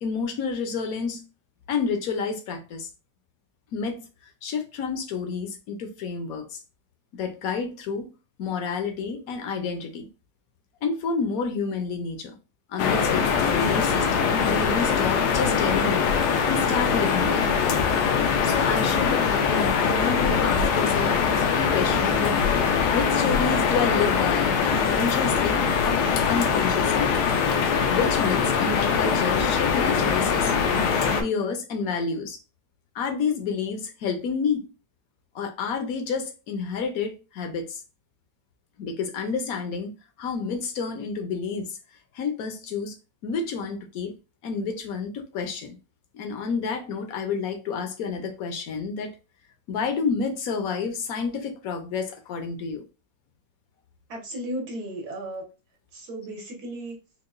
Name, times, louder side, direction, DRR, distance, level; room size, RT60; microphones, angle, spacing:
voice 1, 0.0-1.2 1.7-2.9 3.7-4.1 4.4-6.6 7.1-8.1 8.4-10.1 10.8-12.4 12.7-16.1 16.5-17.6 18.4-22.4 22.9-27.1 27.9-30.5 31.2-32.4 32.9-34.7 35.3-37.8 38.8-39.9 40.2-41.8 42.1-42.9 43.2-44.1 44.4-45.8 46.1-49.1 49.7-52.8, left 5 dB, 65° left, 1.1 m, -29 dB
sound 1, 12.8-31.2, left 6 dB, 85° left, 1.2 m, -22 dB
voice 2, 54.1-55.4 55.9-57.0, right 1 dB, 75° right, 1.6 m, -34 dB
4.7 x 2.2 x 2.5 m
omnidirectional pair, 1.7 m